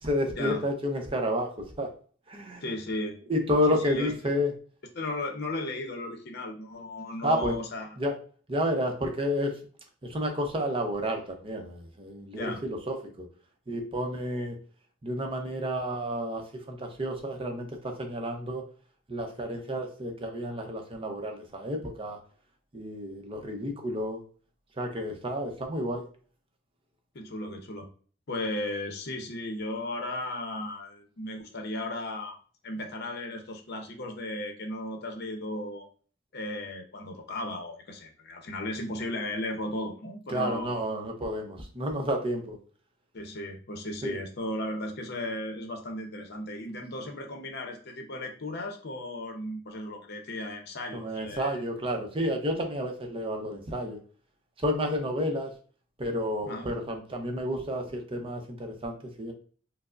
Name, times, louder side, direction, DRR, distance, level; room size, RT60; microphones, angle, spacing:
voice 1, 0.0-1.9 2.3-2.6 3.3-4.5 7.2-7.6 8.0-8.1 8.5-9.6 10.0-13.2 13.7-14.6 15.0-18.6 19.1-22.2 22.7-24.2 24.8-26.0 40.3-42.6 44.0-44.2 50.9-54.0 54.6-55.5 56.0-59.3, equal, 30° right, 3 dB, 0.6 m, -30 dB
voice 2, 2.6-3.2 3.8-4.1 4.9-7.9 12.3-12.6 27.1-27.9 28.3-32.3 32.6-35.9 36.3-40.8 43.1-51.6 56.5-56.7, left 1 dB, 55° left, 4 dB, 0.7 m, -35 dB
4.7 x 2.0 x 2.4 m, 0.42 s
head